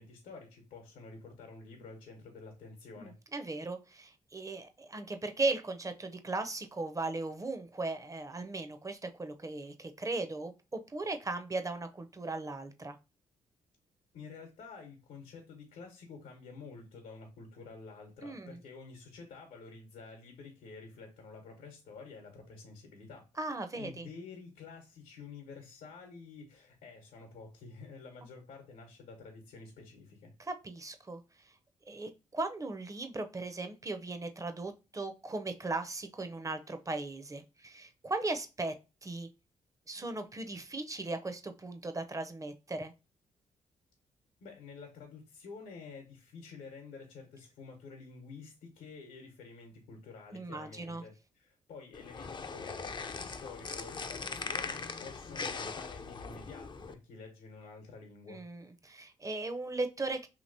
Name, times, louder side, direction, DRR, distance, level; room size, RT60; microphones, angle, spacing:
voice 1, 0.0-3.2 14.1-23.2 23.8-30.3 44.4-58.4, left 4 dB, 80° left, 1 dB, 0.9 m, -50 dB
voice 2, 3.0-13.0 18.2-18.6 23.4-24.1 30.5-31.2 31.9-38.7 39.0-39.3 39.9-42.9 50.3-51.0 58.3-60.3, right 2 dB, 20° right, 8 dB, 0.6 m, -37 dB
sound 1, 51.9-56.9, left 4 dB, 30° left, 0.4 m, -40 dB
2.9 x 2.9 x 2.6 m, 0.28 s
supercardioid pair, 50°, 15 cm